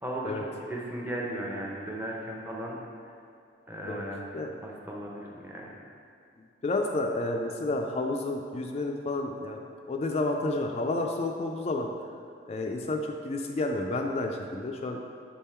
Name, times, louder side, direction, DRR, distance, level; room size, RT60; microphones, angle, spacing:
voice 1, 0.0-2.8 3.7-4.2 4.6-5.7, right 1 dB, 10° right, -3 dB, 0.7 m, -36 dB
voice 2, 6.6-11.9 12.5-15.0, left 2 dB, 35° left, 3 dB, 0.3 m, -30 dB
7.2 x 3.6 x 4.3 m, 2.3 s
head